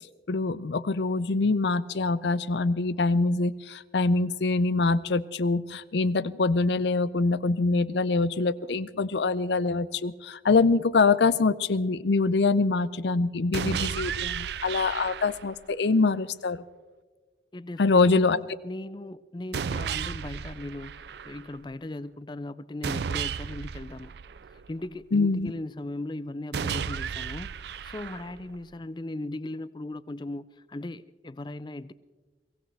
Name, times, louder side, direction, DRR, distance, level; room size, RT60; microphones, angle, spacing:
voice 1, 0.3-16.6 17.8-18.4 25.1-25.5, left 3 dB, 70° left, 0.5 m, -24 dB
sound 1, 13.5-15.6 19.5-21.5 22.8-24.8 26.5-28.5, right 7 dB, 65° right, 0.4 m, -33 dB
voice 2, 17.5-24.2 24.5-27.5 27.8-31.9, left 2 dB, 25° left, 0.4 m, -38 dB
23.0 x 16.5 x 3.4 m
head